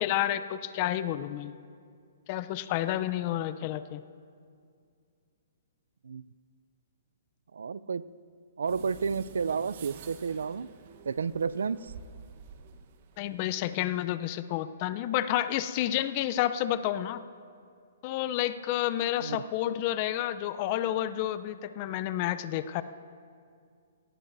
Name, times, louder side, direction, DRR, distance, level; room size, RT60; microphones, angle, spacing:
voice 1, 0.0-1.5 2.3-4.0 13.2-17.2 18.0-22.8, left 12 dB, 40° left, 13 dB, 0.5 m, -30 dB
voice 2, 7.5-8.0 8.6-10.7 11.1-11.9 19.2-19.4, right 5 dB, 80° right, 18 dB, 0.4 m, -31 dB
sound 1, 8.7-13.8, right 7 dB, 50° right, 1.0 m, -50 dB
19.0 x 18.0 x 2.6 m, 2.3 s
hypercardioid pair, 140°, 0 cm